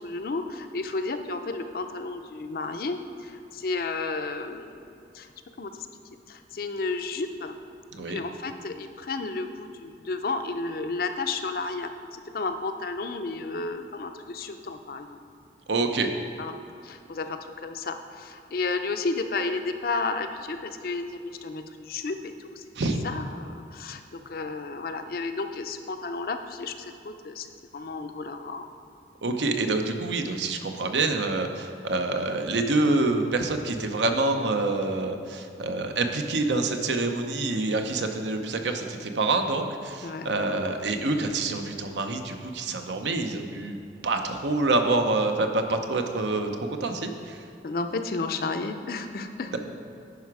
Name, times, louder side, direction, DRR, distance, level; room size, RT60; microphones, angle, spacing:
voice 1, 0.0-5.3 5.6-5.7 6.3-7.5 8.1-15.2 16.4-16.6 16.8-22.6 23.0-27.5 27.7-28.7 40.0-40.3 47.6-49.6, left 3 dB, 55° left, 7 dB, 0.5 m, -32 dB
voice 2, 7.9-8.2 15.7-16.1 22.8-23.0 29.2-43.8 44.0-47.4, right 2 dB, 80° right, 5 dB, 0.7 m, -26 dB
10.5 x 4.9 x 4.7 m, 2.6 s
head